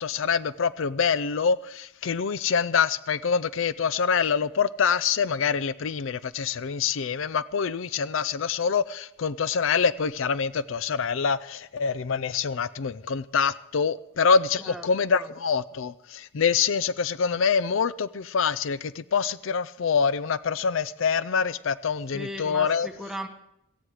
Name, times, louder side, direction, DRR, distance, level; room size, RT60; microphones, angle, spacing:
voice 1, 0.0-22.9, left 6 dB, 65° left, 0.5 m, -25 dB
voice 2, 22.1-23.3, equal, ahead, 1.4 m, -36 dB
18.0 x 14.5 x 4.9 m
head